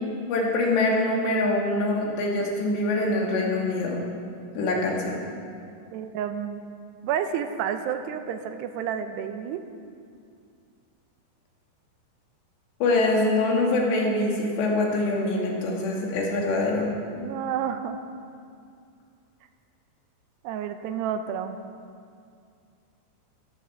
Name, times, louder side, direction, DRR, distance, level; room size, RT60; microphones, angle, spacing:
voice 1, 0.3-4.0 4.6-5.2 12.8-16.9, left 2 dB, 85° left, -1 dB, 4.6 m, -24 dB
voice 2, 5.9-6.6 7.0-9.6 17.2-18.0 20.4-21.6, right 8 dB, 85° right, 8 dB, 2.9 m, -30 dB
14.0 x 13.5 x 7.2 m, 2.3 s
omnidirectional pair, 4.9 m